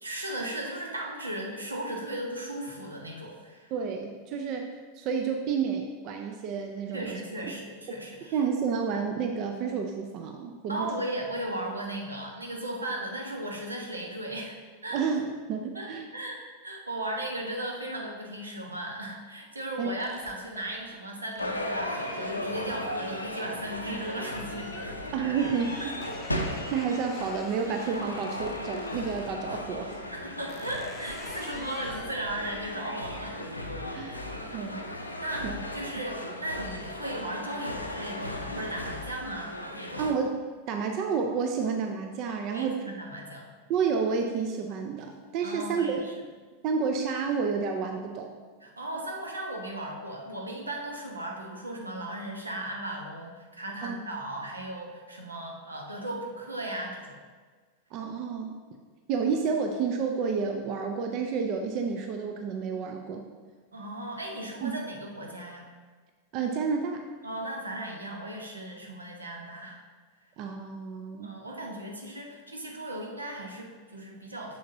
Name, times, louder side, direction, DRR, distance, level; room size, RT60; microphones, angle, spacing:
voice 1, 0.0-3.7 6.9-8.4 10.7-14.6 14.8-15.0 15.7-24.7 30.1-33.4 34.5-34.7 35.2-40.0 42.4-43.5 45.4-46.1 48.6-57.2 63.7-65.6 67.2-69.8 71.2-74.6, right 1 dB, 80° right, 0 dB, 1.0 m, -36 dB
voice 2, 3.7-4.7 5.0-7.2 8.3-10.9 14.9-16.1 19.8-19.9 25.1-25.9 26.7-29.9 33.9-34.3 34.5-34.8 35.4-35.6 40.0-42.8 43.7-46.0 46.6-48.3 53.8-54.0 57.9-58.5 59.1-63.2 64.6-64.7 66.3-67.1 70.4-71.3, right 5 dB, 40° right, 4 dB, 0.5 m, -30 dB
sound 1, 20.0-29.4 30.0-36.4 36.8-37.2 37.5-39.3, left 3 dB, 20° left, 0.7 m, -50 dB
sound 2, 21.4-40.1, left 1 dB, 85° left, 0.5 m, -36 dB
6.9 x 6.4 x 2.6 m, 1.5 s
figure-of-eight pair, 90°, 0 cm